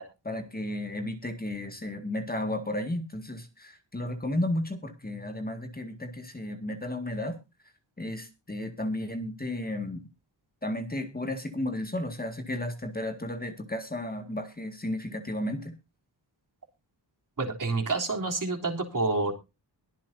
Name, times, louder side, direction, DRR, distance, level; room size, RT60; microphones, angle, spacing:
voice 1, 0.2-7.4 8.0-10.1 10.6-15.7, left 1 dB, 20° left, 6 dB, 2.0 m, -33 dB
voice 2, 17.4-19.3, right 3 dB, 45° right, 2 dB, 3.4 m, -28 dB
22.0 x 7.5 x 2.7 m, 0.27 s
wide cardioid pair, 130°, 44 cm